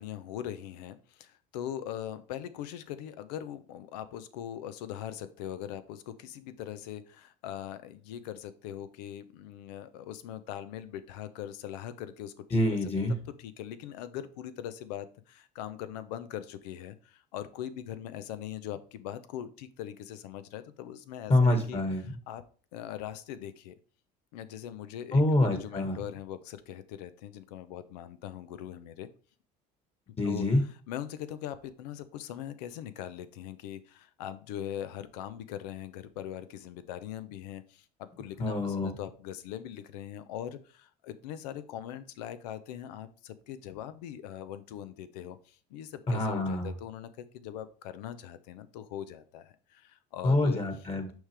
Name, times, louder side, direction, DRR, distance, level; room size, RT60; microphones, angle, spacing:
voice 1, 0.0-12.6 13.4-22.4 22.7-23.7 24.3-29.1 30.2-30.5 30.9-50.6, left 11 dB, 90° left, 13 dB, 0.7 m, -41 dB
voice 2, 12.5-13.2 21.3-22.1 25.1-26.0 30.2-30.6 38.4-38.9 46.1-46.7 50.2-51.1, left 1 dB, 30° left, 6 dB, 1.7 m, -26 dB
6.3 x 5.0 x 3.4 m, 0.40 s
supercardioid pair, 90°, 20 cm